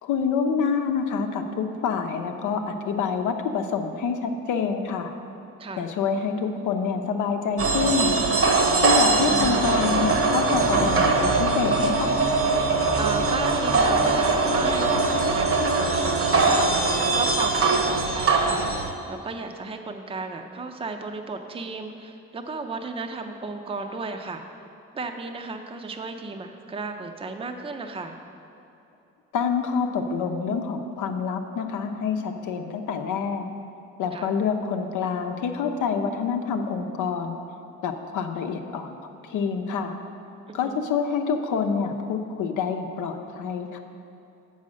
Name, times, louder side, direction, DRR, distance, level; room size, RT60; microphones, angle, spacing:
voice 1, 0.0-5.1 5.8-8.2 8.8-12.1 29.3-33.5 34.0-37.4 37.8-40.0 40.5-43.8, left 6 dB, 85° left, 5 dB, 0.7 m, -27 dB
sound 1, 7.6-18.9, right 3 dB, 45° right, 0.9 m, -22 dB
voice 2, 8.7-9.1 13.0-24.4 24.9-28.2 34.1-34.3 40.5-40.8, right 3 dB, 20° right, 5 dB, 0.5 m, -34 dB
7.4 x 5.6 x 6.3 m, 2.8 s
cardioid pair, 90°, 30 cm